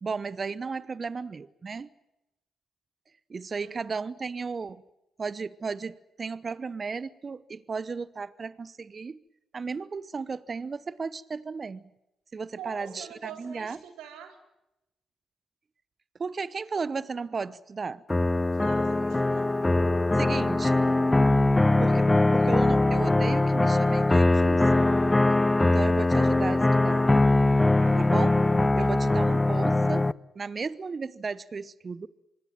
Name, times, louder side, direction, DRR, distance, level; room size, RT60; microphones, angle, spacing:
voice 1, 0.0-1.9 3.3-4.8 5.2-9.2 9.5-11.9 12.3-13.8 16.2-18.0 20.1-20.8 21.8-24.9 25.6-27.1 28.0-28.3 28.7-30.1 30.3-32.1, right 4 dB, 45° right, 0.9 m, -34 dB
voice 2, 12.6-14.4 18.5-19.5 27.8-28.1 28.8-29.2, right 7 dB, 80° right, 4.0 m, -45 dB
sound 1, 18.1-30.1, left 2 dB, 20° left, 0.8 m, -22 dB
25.5 x 21.5 x 7.6 m
hypercardioid pair, 40°, 0 cm